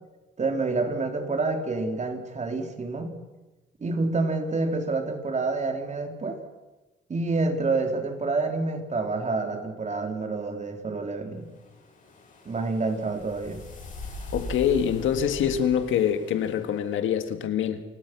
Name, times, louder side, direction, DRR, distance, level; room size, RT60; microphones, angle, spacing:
voice 1, 0.4-3.2 3.8-6.4 7.1-11.5 12.5-13.6, right 3 dB, 35° right, 3.5 m, -28 dB
sound 1, 11.5-16.8, equal, 40° left, 8.0 m, -41 dB
voice 2, 14.3-17.8, left 9 dB, 80° left, 1.8 m, -25 dB
28.0 x 17.5 x 6.1 m
cardioid pair, 90°, 20 cm